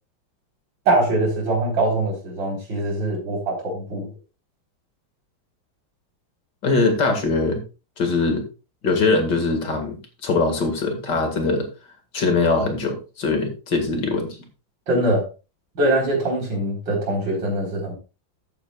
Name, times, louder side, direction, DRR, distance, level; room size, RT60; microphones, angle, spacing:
voice 1, 0.9-4.1 14.9-15.2 15.7-18.0, right 1 dB, 70° right, 0 dB, 4.7 m, -22 dB
voice 2, 6.6-7.6 8.0-8.5 8.8-11.7 12.1-14.4, left 3 dB, 60° left, 5 dB, 2.6 m, -22 dB
13.5 x 8.5 x 2.4 m, 0.31 s
omnidirectional pair, 2.1 m